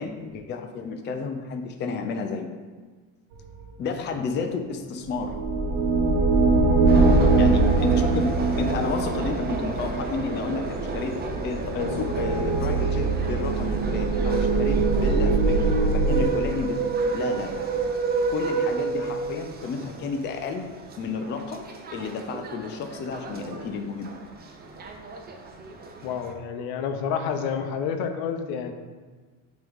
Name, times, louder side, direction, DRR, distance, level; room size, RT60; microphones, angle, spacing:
voice 1, 0.0-2.5 3.8-5.4 7.4-16.8 17.1-17.7 18.3-20.7 21.0-21.6 21.9-24.2, left 5 dB, 30° left, 5 dB, 0.5 m, -31 dB
sound 1, 5.1-16.2, right 3 dB, 70° right, 1.0 m, -23 dB
voice 2, 6.9-7.3 26.0-28.7, left 7 dB, 75° left, 6 dB, 0.7 m, -29 dB
sound 2, 6.9-26.3, right 4 dB, 25° right, 0.6 m, -31 dB
8.9 x 3.0 x 3.5 m, 1.4 s
cardioid pair, 120°, 37 cm